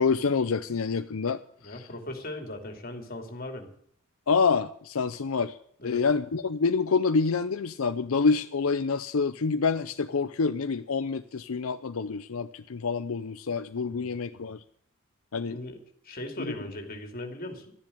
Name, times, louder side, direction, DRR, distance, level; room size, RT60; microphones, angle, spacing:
voice 1, 0.0-1.9 4.3-5.6 5.8-14.6 15.3-15.6, left 5 dB, 80° left, 10 dB, 0.6 m, -27 dB
voice 2, 1.6-3.7 5.8-6.0 13.8-14.1 15.5-15.8 16.0-17.7, left 1 dB, 45° left, 4 dB, 2.8 m, -38 dB
13.0 x 10.5 x 8.5 m, 0.66 s
head